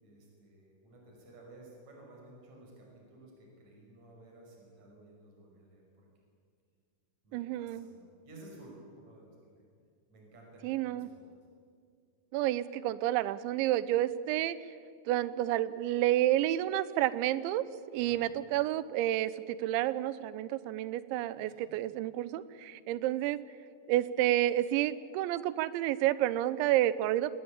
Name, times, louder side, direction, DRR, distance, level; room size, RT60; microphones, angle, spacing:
voice 1, 0.0-6.1 7.2-9.6 10.1-11.3 18.0-18.3 21.1-21.8, right 2 dB, 40° right, -1 dB, 6.8 m, -55 dB
voice 2, 7.3-7.9 10.6-11.1 12.3-14.6 15.1-17.6 17.9-23.4 23.9-27.3, right 14 dB, 85° right, 16 dB, 3.1 m, -30 dB
27.0 x 19.0 x 8.8 m, 2.2 s
omnidirectional pair, 5.2 m